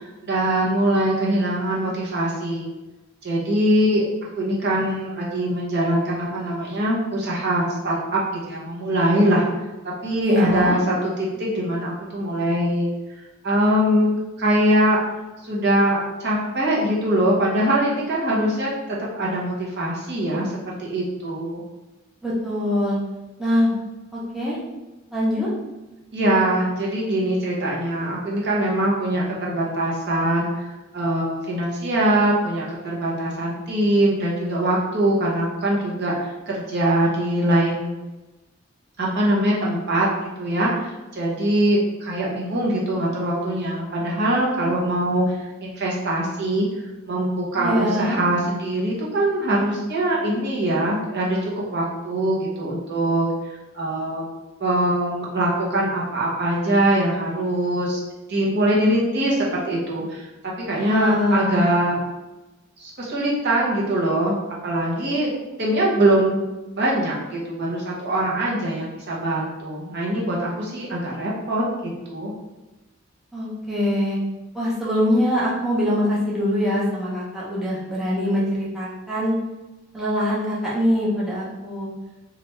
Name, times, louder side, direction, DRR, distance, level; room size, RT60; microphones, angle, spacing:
voice 1, 0.2-2.7 3.2-4.0 4.4-9.4 9.8-12.9 13.4-14.1 14.4-15.0 15.5-18.7 19.1-21.6 26.1-30.7 30.9-37.9 39.0-46.7 47.1-53.3 53.7-54.3 54.6-58.0 58.3-60.2 60.7-62.0 62.8-64.4 64.6-65.3 65.6-66.4 66.7-71.6 72.1-72.3, right 1 dB, 55° right, -4 dB, 0.8 m, -22 dB
voice 2, 10.2-10.8 22.2-23.0 23.4-23.7 24.1-24.6 25.1-25.5 47.6-48.2 60.7-61.6 73.3-74.2 74.5-79.4 79.9-81.9, left 1 dB, ahead, -8 dB, 0.7 m, -23 dB
3.2 x 2.4 x 3.1 m, 1.1 s
head